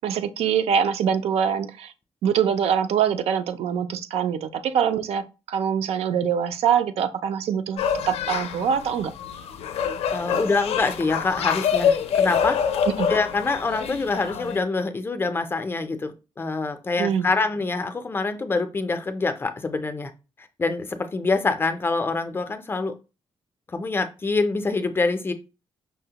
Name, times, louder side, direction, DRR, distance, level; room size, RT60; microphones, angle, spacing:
voice 1, 0.0-1.9 2.2-7.8 8.1-9.1 13.0-13.1 17.0-17.3, right 8 dB, 85° right, 0.4 m, -24 dB
sound 1, 7.8-14.6, left 7 dB, 85° left, 0.4 m, -26 dB
voice 2, 10.1-12.6 13.1-20.1 20.6-22.9 23.7-25.3, left 3 dB, 20° left, 0.4 m, -25 dB
5.4 x 2.1 x 2.8 m
wide cardioid pair, 145°, 10 cm